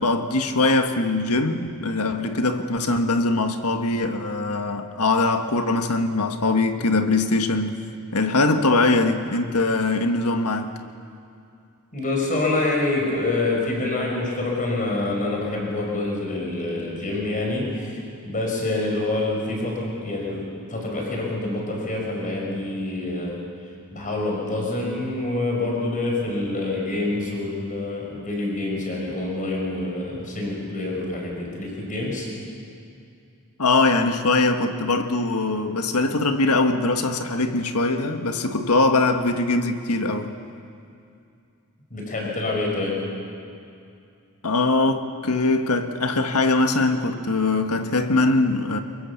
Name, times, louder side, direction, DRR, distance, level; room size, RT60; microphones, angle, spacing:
voice 1, 0.0-7.8 8.1-10.7 33.6-40.3 44.4-48.8, left 2 dB, 85° left, 1.6 m, -22 dB
voice 2, 11.9-20.4 20.7-23.4 23.9-32.3 41.9-43.0, left 2 dB, 35° left, 5.6 m, -26 dB
23.5 x 22.5 x 7.2 m
head